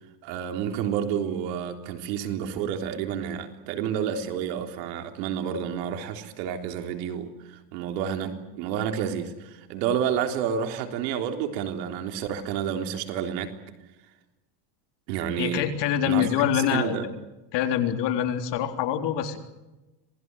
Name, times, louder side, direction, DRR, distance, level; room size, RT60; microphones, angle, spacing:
voice 1, 0.2-13.5 15.1-15.6 16.1-17.1, right 8 dB, 90° right, 3.7 m, -30 dB
voice 2, 15.4-17.1 17.5-19.4, left 10 dB, 55° left, 3.7 m, -25 dB
27.0 x 20.0 x 8.0 m
cardioid pair, 140°, 49 cm